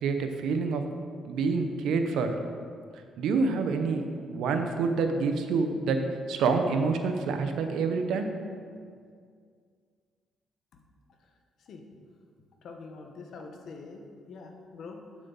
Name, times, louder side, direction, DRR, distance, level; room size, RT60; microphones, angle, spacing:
voice 1, 0.0-0.8 1.3-2.4 3.2-6.0 6.3-8.3, right 4 dB, 80° right, 6 dB, 0.7 m, -27 dB
voice 2, 12.6-14.0 14.3-15.0, left 4 dB, 65° left, 3 dB, 1.0 m, -44 dB
8.4 x 7.4 x 4.0 m, 2.1 s
cardioid pair, 90°, 0 cm